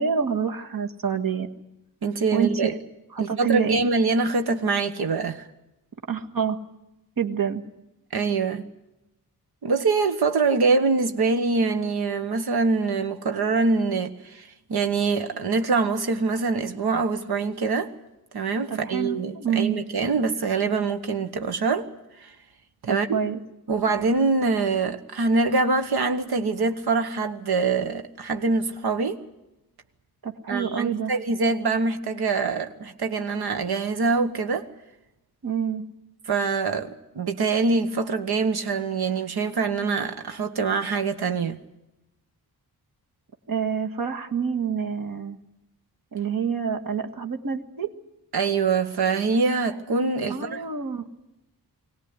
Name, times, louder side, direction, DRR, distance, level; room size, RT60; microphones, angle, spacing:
voice 1, 0.0-1.5 2.3-2.7 3.1-3.8 6.1-6.6 7.2-7.6 18.7-19.8 22.9-23.4 30.2-31.1 35.4-35.8 43.5-45.4 46.1-47.9 50.3-51.0, right 7 dB, 60° right, 1.7 m, -27 dB
voice 2, 2.0-2.7 3.2-5.5 8.1-8.6 9.6-17.9 18.3-21.9 22.2-22.3 22.8-23.2 23.7-29.2 30.5-34.7 36.3-41.6 48.3-50.6, right 4 dB, 80° right, 1.4 m, -24 dB
21.5 x 17.5 x 9.7 m
wide cardioid pair, 105°, 38 cm